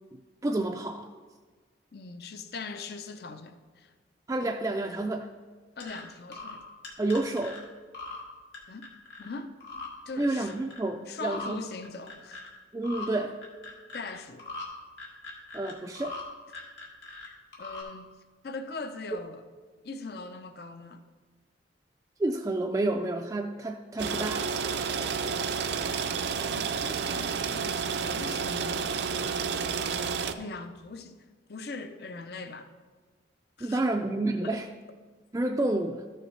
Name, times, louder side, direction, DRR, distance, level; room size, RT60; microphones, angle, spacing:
voice 1, 0.1-1.1 4.3-5.3 7.0-7.6 10.2-11.6 12.7-13.4 15.5-16.2 22.2-24.5 33.6-34.7 35.3-36.0, right 2 dB, 20° right, 3 dB, 0.3 m, -29 dB
voice 2, 1.9-3.9 5.8-6.6 8.7-8.9 9.2-9.6 10.1-10.6 11.1-12.4 13.9-14.5 17.2-18.1 18.4-19.4 19.8-21.0 26.4-28.9 30.4-32.7 33.6-33.8 34.4-34.6, left 3 dB, 60° left, 8 dB, 0.6 m, -41 dB
sound 1, 5.8-6.0 6.3-6.6 6.8-7.6 7.9-8.2 8.5-9.3 9.6-9.9 10.2-10.9 11.2-11.5 11.8-12.5 12.8-13.1 13.4-14.1 14.4-14.7 15.0-16.2 16.5-17.3 17.5-17.8, left 3 dB, 80° left, 1.9 m, -41 dB
sound 2, 24.0-30.3, right 6 dB, 75° right, 0.5 m, -30 dB
13.5 x 6.5 x 3.2 m, 1.4 s
head